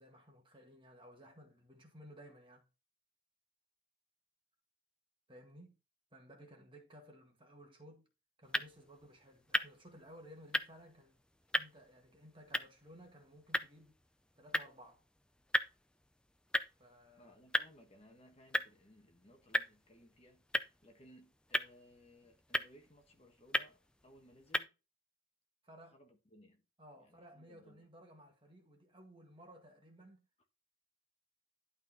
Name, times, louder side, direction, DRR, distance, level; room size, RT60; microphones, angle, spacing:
voice 1, 0.0-2.7 5.3-5.8 6.1-8.1 8.4-11.2 11.6-14.0 14.3-15.0 16.8-17.3 25.6-26.0 26.8-30.3, equal, 25° right, 1.7 m, -57 dB
sound 1, 8.4-24.6, left 1 dB, 5° left, 0.4 m, -40 dB
voice 2, 17.2-24.8 25.9-26.6 27.0-27.8, equal, 30° left, 1.4 m, -62 dB
11.5 x 4.0 x 4.0 m
head